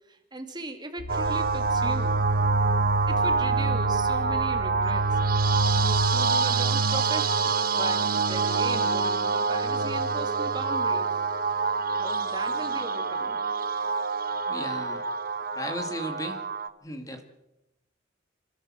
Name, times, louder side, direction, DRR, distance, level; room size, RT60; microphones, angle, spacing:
voice 1, 0.1-2.2 3.1-11.1 12.0-13.4, right 2 dB, 20° right, 5 dB, 2.4 m, -38 dB
sound 1, 1.0-6.1, left 3 dB, 85° left, 1.1 m, -39 dB
sound 2, 1.1-16.7, right 4 dB, 50° right, 1.0 m, -25 dB
voice 2, 14.5-15.0 15.6-16.4 16.8-17.2, equal, 20° left, 6 dB, 1.9 m, -35 dB
27.0 x 13.5 x 7.5 m, 0.90 s
head